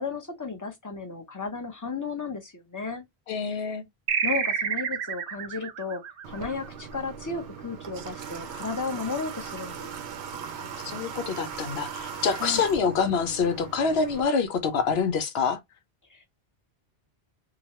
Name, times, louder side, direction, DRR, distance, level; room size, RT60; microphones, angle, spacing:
voice 1, 0.0-3.0 3.5-3.6 4.2-9.9 12.3-12.6 16.1-16.3, left 4 dB, 20° left, 0.6 m, -34 dB
voice 2, 3.3-3.8 10.8-15.6, left 5 dB, 75° left, 0.9 m, -26 dB
sound 1, 4.1-7.1, right 6 dB, 65° right, 0.8 m, -29 dB
Water / Water tap faucet, 6.2-14.3, right 7 dB, 90° right, 0.9 m, -39 dB
2.9 x 2.1 x 2.9 m
omnidirectional pair, 1.1 m